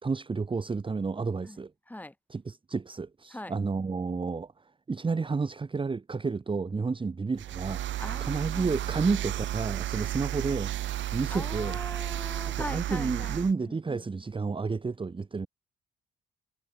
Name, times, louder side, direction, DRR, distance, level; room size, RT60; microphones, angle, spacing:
voice 1, 0.0-1.7 2.3-7.8 8.2-10.7 11.1-11.8 12.5-15.5, right 4 dB, 25° right, 1.4 m, -31 dB
sound 1, 7.4-13.5, right 13 dB, 70° right, 0.8 m, -33 dB
voice 2, 8.0-8.8 11.3-14.0, left 1 dB, 10° left, 7.8 m, -41 dB
cardioid pair, 90°, 20 cm